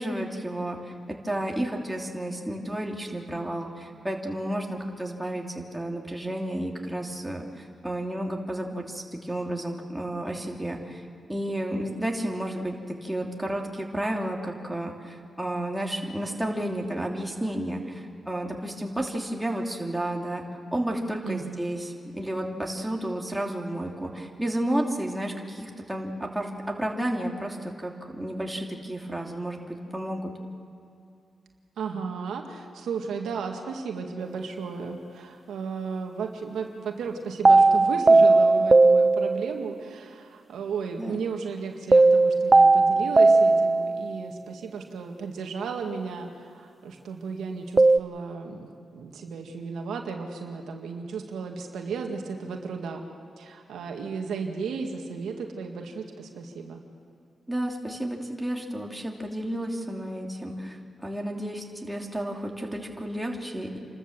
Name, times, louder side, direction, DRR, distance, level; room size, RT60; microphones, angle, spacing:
voice 1, 0.0-11.0 11.3-20.4 20.7-30.3 41.0-41.2 57.5-63.8, right 1 dB, 10° right, 0 dB, 2.9 m, -32 dB
voice 2, 21.2-21.6 31.8-53.0 53.4-56.8, right 5 dB, 90° right, 3 dB, 1.9 m, -34 dB
sound 1, 37.4-39.7 41.9-44.2 47.8-48.0, right 3 dB, 30° right, 0.4 m, -17 dB
28.5 x 13.0 x 7.5 m, 2.5 s
cardioid pair, 70°, 0 cm